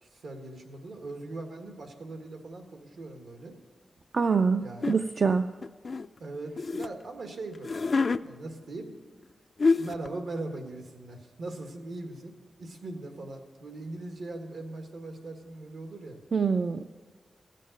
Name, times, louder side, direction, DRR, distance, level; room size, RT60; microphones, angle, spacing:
voice 1, 0.0-3.5 4.6-4.8 6.2-8.9 9.8-16.2, right 2 dB, 80° right, 4 dB, 1.6 m, -40 dB
voice 2, 4.1-5.5 16.3-16.8, right 5 dB, 50° right, 9 dB, 0.4 m, -25 dB
sound 1, 4.8-5.0 5.6-6.9 7.5-8.2 9.2-9.3 9.6-10.1, left 4 dB, 45° left, 0.3 m, -27 dB
16.0 x 7.5 x 6.5 m, 1.5 s
wide cardioid pair, 145°, 0 cm